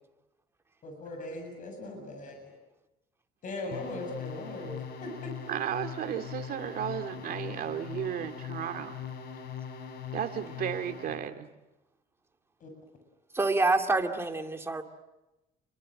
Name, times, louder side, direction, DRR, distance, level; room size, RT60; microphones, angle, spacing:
voice 1, 0.8-2.5 3.4-5.3 12.6-12.7, left 1 dB, 50° left, 4 dB, 7.6 m, -39 dB
sound 1, 3.7-11.3, left 7 dB, 70° left, 5.3 m, -41 dB
voice 2, 5.5-9.0 10.1-11.5, right 10 dB, 60° right, 7 dB, 2.4 m, -34 dB
voice 3, 13.3-14.8, right 3 dB, 15° right, 4 dB, 2.4 m, -27 dB
29.5 x 23.0 x 7.8 m, 0.98 s
cardioid pair, 110°, 17 cm